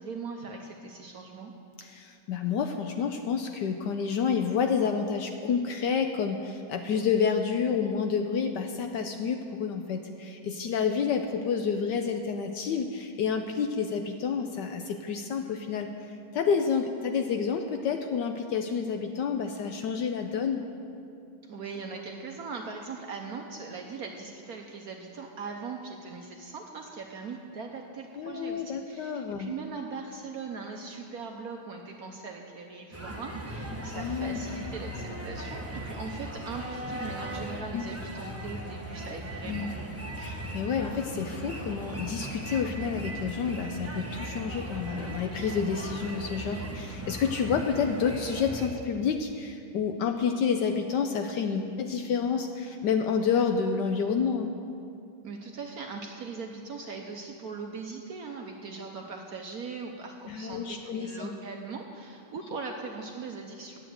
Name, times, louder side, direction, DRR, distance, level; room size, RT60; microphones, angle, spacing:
voice 1, 0.0-1.5 21.4-39.8 55.2-63.8, right 4 dB, 60° right, 2 dB, 1.0 m, -40 dB
voice 2, 1.8-20.6 28.2-29.5 33.9-34.4 37.7-37.8 39.5-39.7 40.2-54.5 60.3-61.3, left 6 dB, 70° left, 5 dB, 1.1 m, -29 dB
sound 1, 32.9-48.7, right 1 dB, 20° right, 0.4 m, -38 dB
10.0 x 9.0 x 7.8 m, 2.5 s
omnidirectional pair, 2.3 m